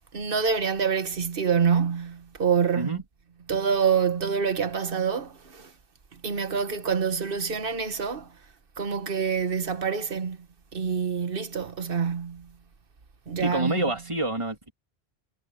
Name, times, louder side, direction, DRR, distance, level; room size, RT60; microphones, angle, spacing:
voice 1, 0.1-3.0 3.5-5.7 6.1-8.3 8.8-10.4 10.7-12.5 13.3-13.9, right 6 dB, 60° right, 1.5 m, -26 dB
voice 2, 13.4-14.7, right 1 dB, 30° right, 3.1 m, -28 dB
omnidirectional pair, 1.1 m